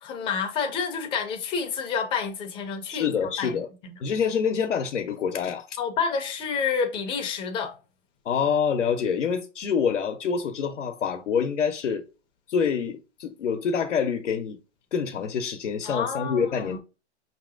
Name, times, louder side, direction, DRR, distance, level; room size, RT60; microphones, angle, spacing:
voice 1, 0.0-3.9 5.8-7.7 15.8-16.8, left 6 dB, 15° left, 0.5 m, -29 dB
voice 2, 2.9-3.7 4.0-5.8 8.2-12.0 12.5-14.6 14.9-16.8, left 6 dB, 90° left, 0.7 m, -26 dB
5.3 x 2.9 x 2.4 m
hypercardioid pair, 135°, 35 cm